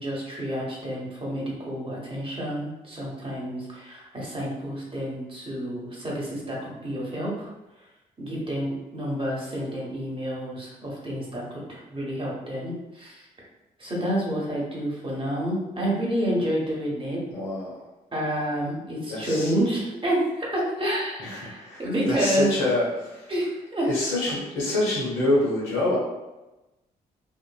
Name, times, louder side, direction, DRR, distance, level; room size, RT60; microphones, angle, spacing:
voice 1, 0.0-7.5 8.2-13.2 13.8-17.2 18.1-22.5 23.3-23.9, right 1 dB, 25° right, -4 dB, 1.1 m, -29 dB
voice 2, 17.3-17.8 19.1-19.5 21.2-23.3 23.9-26.0, left 2 dB, 75° left, -5 dB, 0.9 m, -26 dB
2.8 x 2.4 x 2.3 m, 1.0 s
hypercardioid pair, 40°, 20 cm